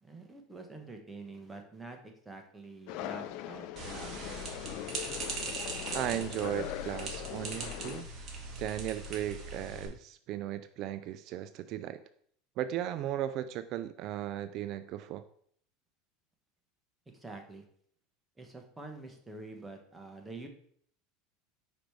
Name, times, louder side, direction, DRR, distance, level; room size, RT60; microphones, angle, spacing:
voice 1, 0.0-4.5 17.1-17.6 18.4-20.5, right 3 dB, 10° right, 3 dB, 1.1 m, -47 dB
sound 1, 2.9-8.0, left 13 dB, 60° left, 0.4 m, -41 dB
sound 2, 3.8-9.9, right 3 dB, 30° right, 1.8 m, -40 dB
voice 2, 5.9-8.0 8.6-12.0 12.6-15.2, right 12 dB, 50° right, 11 dB, 0.3 m, -36 dB
5.1 x 5.0 x 4.6 m, 0.63 s
supercardioid pair, 125°, 0 cm